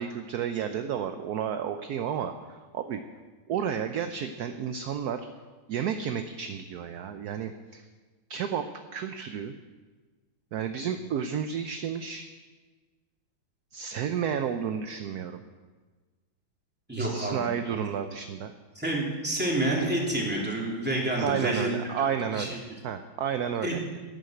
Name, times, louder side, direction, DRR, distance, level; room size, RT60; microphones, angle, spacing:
voice 1, 0.0-3.0 3.5-5.3 5.7-7.8 8.3-8.7 8.9-9.5 10.5-12.3 13.7-15.4 17.0-18.5 21.2-22.6 22.8-23.8, right 8 dB, 65° right, 8 dB, 1.0 m, -31 dB
voice 2, 16.9-17.8 18.7-21.7 21.9-22.0 22.3-22.6 23.6-23.8, right 1 dB, 5° right, -3 dB, 2.9 m, -29 dB
11.5 x 9.3 x 7.9 m, 1.4 s
omnidirectional pair, 2.2 m